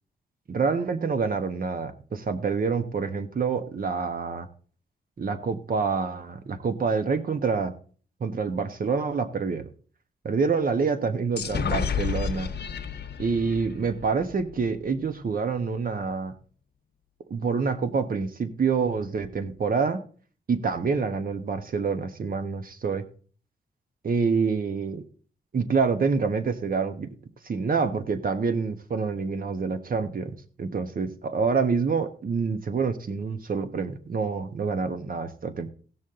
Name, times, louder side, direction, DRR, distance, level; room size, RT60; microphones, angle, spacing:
voice 1, 0.5-4.5 5.2-7.7 8.2-9.7 10.2-12.5 13.2-16.3 17.3-20.0 20.5-23.0 24.0-25.0 25.5-27.1 27.4-35.7, right 5 dB, 55° right, 9 dB, 1.3 m, -27 dB
sound 1, 11.4-15.0, left 7 dB, 70° left, 1.0 m, -31 dB
17.5 x 6.3 x 3.8 m, 0.42 s
wide cardioid pair, 105°, 18 cm